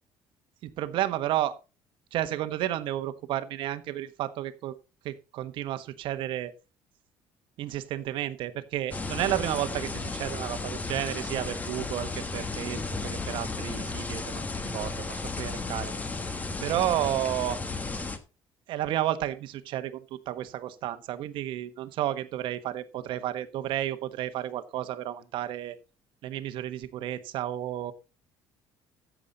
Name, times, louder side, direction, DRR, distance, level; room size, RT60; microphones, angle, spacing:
voice 1, 0.6-1.6 2.1-4.7 5.0-6.5 7.6-14.5 14.7-15.9 16.6-17.6 18.7-25.8 26.2-27.9, right 13 dB, 65° right, 11 dB, 1.3 m, -32 dB
sound 1, 8.9-18.2, left 3 dB, 15° left, 1.3 m, -34 dB
14.0 x 7.5 x 4.1 m, 0.30 s
cardioid pair, 155°, 9 cm